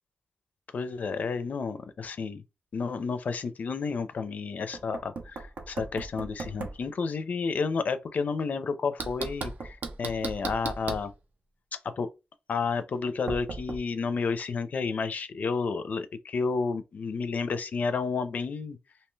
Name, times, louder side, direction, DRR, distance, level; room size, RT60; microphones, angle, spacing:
voice 1, 0.7-2.4 2.7-11.1 12.0-12.1 12.5-18.8, left 4 dB, 60° left, 0.4 m, -31 dB
Knock, 4.7-6.8 9.0-11.1 13.3-13.8, right 3 dB, 60° right, 0.6 m, -37 dB
2.7 x 2.2 x 3.1 m
cardioid pair, 90°, 3 cm